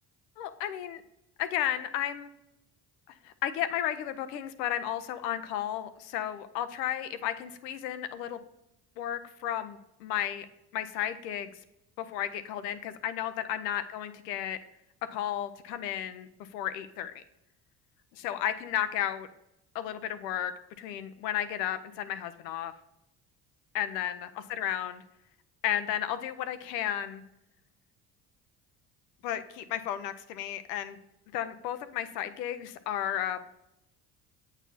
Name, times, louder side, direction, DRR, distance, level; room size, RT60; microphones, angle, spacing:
voice 1, 0.4-1.0 1.4-2.3 3.1-8.4 9.0-10.5 10.7-11.6 12.0-14.6 15.1-17.2 18.1-19.3 19.7-20.5 20.8-22.7 23.7-25.0 25.6-27.2 29.2-31.0 31.3-33.4, left 11 dB, 90° left, 11 dB, 0.6 m, -33 dB
8.0 x 4.1 x 4.0 m, 0.87 s
hypercardioid pair, 55°, 48 cm